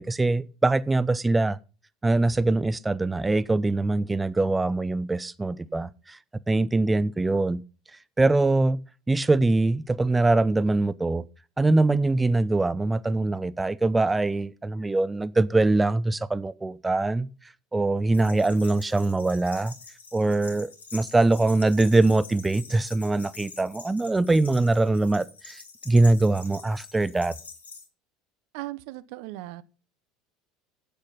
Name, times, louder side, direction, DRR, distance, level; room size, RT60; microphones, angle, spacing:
voice 1, 0.0-1.6 2.0-6.2 6.5-7.6 8.2-8.8 9.1-11.2 11.6-17.3 17.7-19.7 20.1-27.3, right 2 dB, 15° right, 0.7 m, -23 dB
sound 1, 18.1-27.9, left 4 dB, 85° left, 2.4 m, -46 dB
voice 2, 28.5-29.6, right 17 dB, 60° right, 0.7 m, -37 dB
10.5 x 8.2 x 5.7 m
figure-of-eight pair, 70°, 0 cm